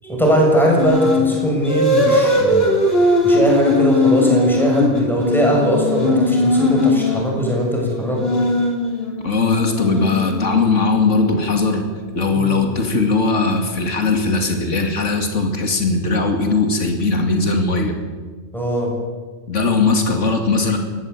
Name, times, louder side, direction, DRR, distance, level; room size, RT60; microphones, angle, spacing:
voice 1, 0.0-2.7 3.2-8.4 12.3-12.6 18.5-18.9, equal, ahead, -2 dB, 7.1 m, -19 dB
sound 1, 0.8-1.3 1.6-7.3 8.0-11.0, left 1 dB, 50° left, 3.9 m, -19 dB
voice 2, 9.2-11.9 12.1-17.9 19.5-20.8, left 3 dB, 75° left, 4 dB, 2.9 m, -19 dB
21.5 x 17.0 x 8.6 m, 1.4 s
omnidirectional pair, 1.3 m